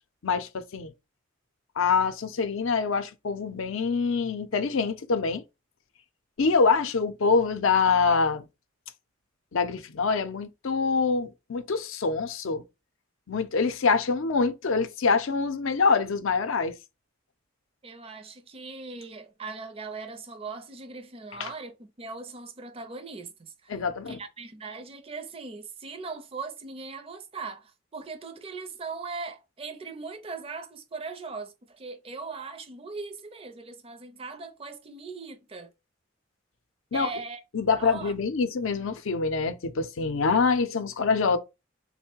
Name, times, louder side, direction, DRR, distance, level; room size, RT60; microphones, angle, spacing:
voice 1, 0.2-0.9 1.8-5.4 6.4-8.5 9.5-12.6 13.3-16.7 21.4-21.5 23.7-24.2 36.9-37.1 37.5-41.4, left 4 dB, 75° left, 0.5 m, -25 dB
voice 2, 17.8-23.8 24.1-35.7 36.9-37.4 37.8-38.1, right 4 dB, 25° right, 0.5 m, -39 dB
3.6 x 2.1 x 4.3 m
head